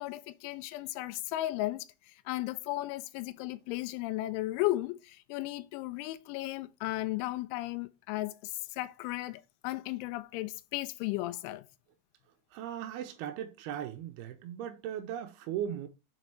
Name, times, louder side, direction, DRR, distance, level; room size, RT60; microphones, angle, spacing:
voice 1, 0.0-1.9 2.3-11.7, left 17 dB, 85° left, 3.0 m, -35 dB
voice 2, 12.5-15.9, right 10 dB, 85° right, 2.3 m, -38 dB
7.0 x 4.2 x 4.6 m
omnidirectional pair, 5.4 m